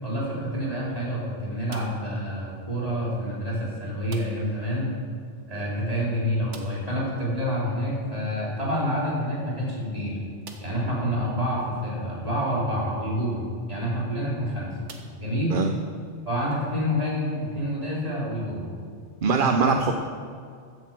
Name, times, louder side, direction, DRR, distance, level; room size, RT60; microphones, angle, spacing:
voice 1, 0.0-4.9 5.5-10.2 10.6-13.4 13.7-14.7 15.2-15.6 16.3-18.6 19.4-19.7, equal, 30° right, -6 dB, 4.1 m, -28 dB
sound 1, 1.7-2.2 4.1-4.6 4.9-5.0 5.3-5.4 6.5-7.0 8.8-8.9 9.5-9.6 10.4-10.9 11.6-11.7 13.7-14.0 14.8-15.7, right 4 dB, 85° right, 1.5 m, -47 dB
voice 2, 19.2-19.9, right 5 dB, 55° right, 5 dB, 0.8 m, -22 dB
13.5 x 8.2 x 7.5 m, 2.2 s
omnidirectional pair, 1.2 m